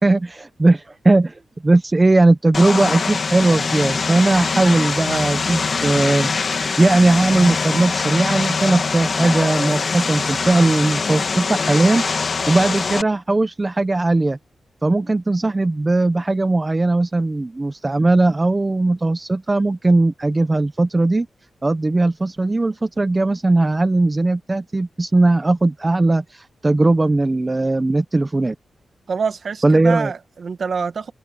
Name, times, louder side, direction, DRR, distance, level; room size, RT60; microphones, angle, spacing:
voice 1, 0.0-6.3 6.8-12.0 12.5-14.4 14.8-21.3 21.6-28.5 29.6-30.1, right 2 dB, 20° right, 0.9 m, -18 dB
Vehicle, 2.5-13.0, left 4 dB, 45° left, 1.5 m, -23 dB
voice 2, 29.1-31.1, right 5 dB, 55° right, 1.8 m, -25 dB
wide cardioid pair, 105°, 0 cm